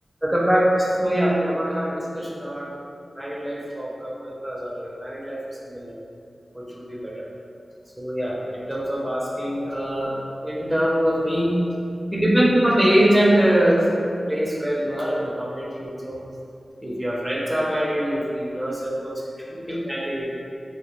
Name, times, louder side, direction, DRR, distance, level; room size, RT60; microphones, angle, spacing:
voice 1, 0.2-2.7 3.1-6.0 6.5-7.2 8.0-11.6 12.1-13.9 14.3-16.2 16.8-19.2 19.5-20.3, equal, 10° right, -4 dB, 0.5 m, -23 dB
2.2 x 2.1 x 2.9 m, 2.4 s
wide cardioid pair, 75°, 0 cm